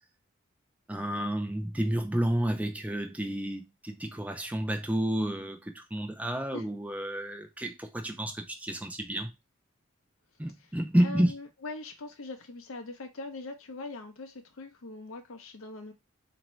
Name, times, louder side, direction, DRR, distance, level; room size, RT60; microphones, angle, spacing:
voice 1, 0.9-9.3 10.4-11.3, right 1 dB, 5° right, 0.5 m, -30 dB
voice 2, 11.0-15.9, left 3 dB, 75° left, 0.6 m, -42 dB
4.2 x 2.6 x 3.0 m
head